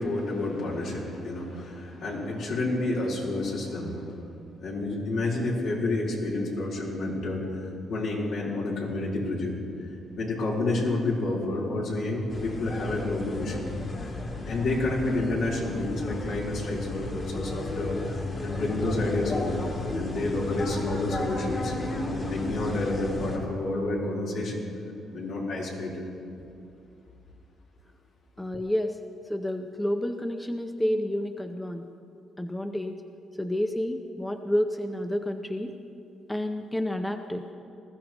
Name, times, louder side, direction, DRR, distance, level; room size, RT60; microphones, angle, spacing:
voice 1, 0.0-4.2 4.6-9.5 10.2-13.7 14.5-19.6 19.9-21.7 22.2-24.6 25.1-26.0, left 2 dB, 75° left, -5 dB, 3.8 m, -29 dB
sound 1, 12.3-23.4, left 2 dB, 40° left, 2.8 m, -33 dB
voice 2, 28.4-29.0 29.3-31.9 32.4-33.0 33.4-35.7 36.3-37.5, left 1 dB, 10° left, 6 dB, 0.7 m, -29 dB
20.0 x 14.0 x 3.0 m, 2.6 s
cardioid pair, 90°, 0 cm